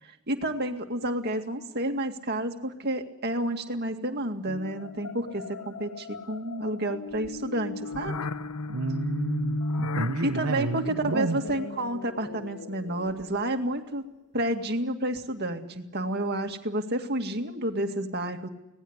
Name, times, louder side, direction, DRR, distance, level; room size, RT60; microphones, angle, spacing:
voice 1, 0.0-8.2 10.2-14.0 14.3-18.5, right 1 dB, 50° right, 5 dB, 2.2 m, -30 dB
sound 1, 4.5-13.6, left 2 dB, 90° left, 0.9 m, -35 dB
voice 2, 8.7-11.4, right 2 dB, 80° right, 4 dB, 1.1 m, -31 dB
25.5 x 18.5 x 8.1 m, 0.96 s
head